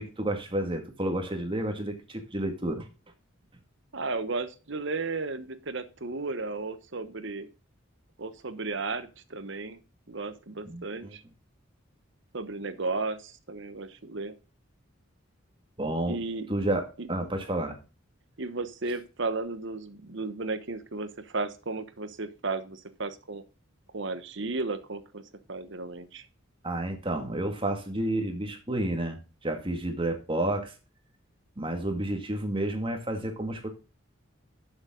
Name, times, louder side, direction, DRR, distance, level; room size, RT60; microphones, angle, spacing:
voice 1, 0.0-2.9 10.6-11.1 15.8-16.2 16.5-17.8 26.6-30.7 31.6-33.7, right 1 dB, 25° right, 5 dB, 2.1 m, -30 dB
voice 2, 3.9-7.5 8.2-9.8 10.1-11.2 12.3-14.3 16.1-16.5 17.0-17.1 18.4-23.4 23.9-25.2 25.5-26.3, right 3 dB, 60° right, 11 dB, 1.1 m, -34 dB
11.5 x 7.3 x 3.9 m, 0.32 s
head